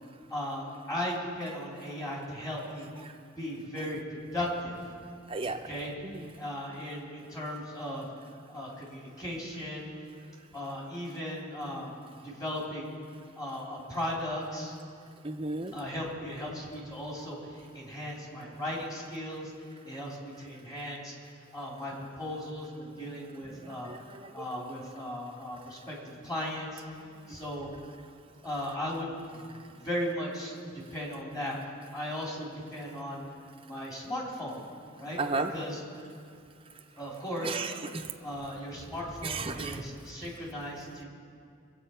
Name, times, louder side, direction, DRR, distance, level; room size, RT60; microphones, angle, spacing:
voice 1, 0.3-2.9 3.3-4.8 5.6-5.9 6.4-8.1 8.5-9.9 10.5-11.9 12.2-12.9 13.4-14.7 15.7-17.4 17.7-19.5 19.8-21.1 21.5-23.9 24.3-26.8 27.3-27.7 28.4-29.4 29.8-30.5 30.9-31.5 31.9-33.2 33.6-34.6 35.0-35.2 35.5-35.8 37.0-37.6 38.2-41.0, left 1 dB, 20° left, -3 dB, 3.2 m, -36 dB
voice 2, 15.2-15.7 23.6-24.4 35.2-35.5 37.4-38.1 39.2-39.8, right 3 dB, 25° right, 4 dB, 0.7 m, -34 dB
22.0 x 8.1 x 5.6 m, 2.3 s
head